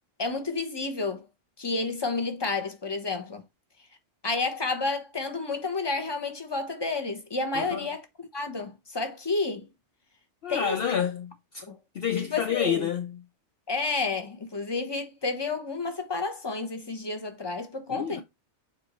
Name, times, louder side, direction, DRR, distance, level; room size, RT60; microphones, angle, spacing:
voice 1, 0.2-1.3 1.6-3.4 4.2-9.7 10.5-11.0 11.7-11.8 12.2-12.9 13.7-18.2, left 3 dB, 20° left, 1.1 m, -30 dB
voice 2, 7.5-7.9 10.4-11.7 11.9-13.2 17.9-18.2, left 8 dB, 60° left, 0.8 m, -29 dB
7.4 x 4.5 x 3.1 m
omnidirectional pair, 1.2 m